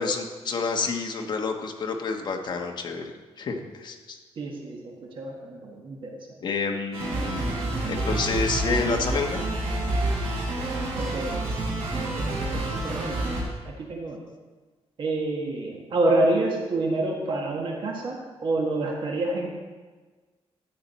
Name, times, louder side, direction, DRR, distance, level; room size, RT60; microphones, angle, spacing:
voice 1, 0.0-3.1 3.4-4.2 6.4-7.6 7.9-9.4, left 4 dB, 40° left, 2 dB, 1.2 m, -29 dB
voice 2, 4.4-6.2 11.0-11.3 12.2-13.3 13.6-14.2 15.0-19.5, right 2 dB, 50° right, 0 dB, 1.4 m, -28 dB
sound 1, 6.9-13.4, right 2 dB, 70° right, 3.9 m, -28 dB
13.5 x 8.6 x 4.1 m, 1.4 s
wide cardioid pair, 180°, 11 cm